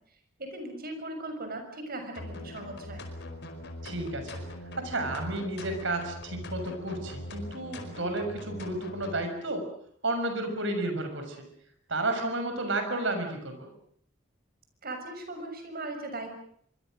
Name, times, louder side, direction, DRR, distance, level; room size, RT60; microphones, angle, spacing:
voice 1, 0.4-3.0 14.8-16.3, right 2 dB, 50° right, 6 dB, 6.6 m, -38 dB
sound 1, 2.2-9.2, left 1 dB, 60° left, 4.9 m, -41 dB
voice 2, 3.8-4.4 4.8-9.6 10.0-11.4 11.9-13.7, right 2 dB, 65° right, 6 dB, 6.5 m, -32 dB
25.0 x 24.5 x 6.5 m, 0.65 s
head